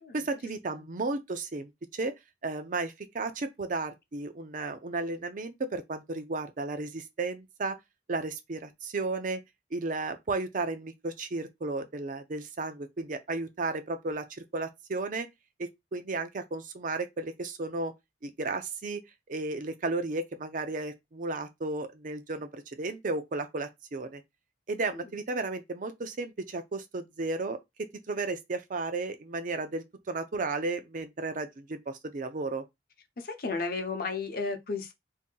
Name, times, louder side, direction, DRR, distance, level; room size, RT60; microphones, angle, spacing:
voice 1, 0.1-2.1 2.4-7.8 8.1-9.4 9.7-15.3 15.6-17.9 18.2-19.0 19.3-24.2 24.7-27.6 28.1-32.6, right 3 dB, 50° right, 0.5 m, -34 dB
voice 2, 33.2-34.9, left 4 dB, 55° left, 0.7 m, -34 dB
2.7 x 2.6 x 3.7 m
head